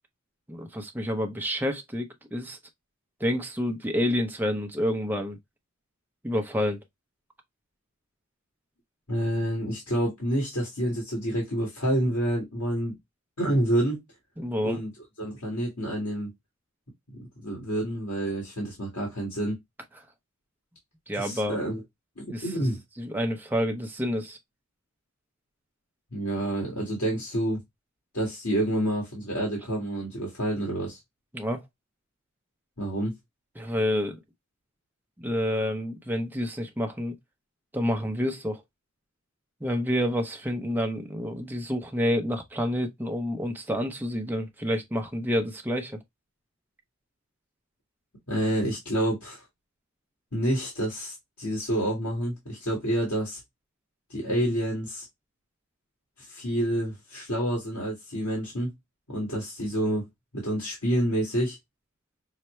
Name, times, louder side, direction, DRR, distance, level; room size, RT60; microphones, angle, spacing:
voice 1, 0.5-2.6 3.2-5.4 6.2-6.8 14.4-14.8 21.1-21.6 22.3-22.7 23.0-24.4 31.3-31.6 33.6-34.2 35.2-37.2 37.7-38.6 39.6-46.0, equal, 10° right, 0.6 m, -28 dB
voice 2, 9.1-12.9 13.4-14.0 14.6-14.9 15.2-16.3 17.1-19.6 21.2-21.8 22.2-22.8 26.1-27.6 28.1-31.0 32.8-33.1 48.3-49.4 50.3-53.4 54.1-55.0 56.2-58.7 59.1-60.1 60.3-61.6, right 1 dB, 90° left, 1.7 m, -28 dB
5.6 x 2.1 x 3.1 m
head